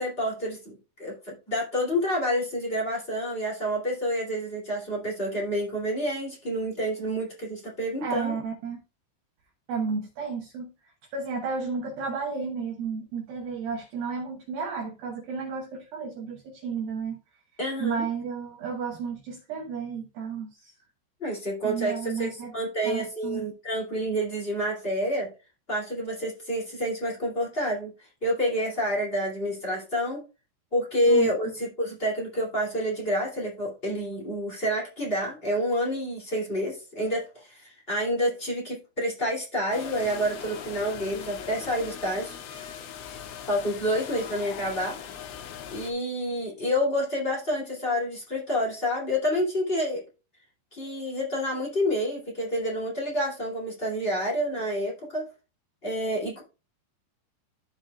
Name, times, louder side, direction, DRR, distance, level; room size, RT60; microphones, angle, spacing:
voice 1, 0.0-8.3 17.6-18.0 21.2-25.3 25.7-27.9 28.2-30.2 30.7-42.4 43.5-44.9 45.7-50.0 50.7-55.3 55.8-56.4, equal, 20° left, 1.5 m, -28 dB
voice 2, 8.0-8.8 9.7-10.7 11.1-17.2 17.8-20.7 21.6-22.5 22.8-23.4 31.1-31.3, right 5 dB, 70° right, 2.3 m, -32 dB
sound 1, 39.7-45.9, left 9 dB, 80° left, 3.5 m, -40 dB
14.5 x 5.2 x 2.3 m
omnidirectional pair, 5.4 m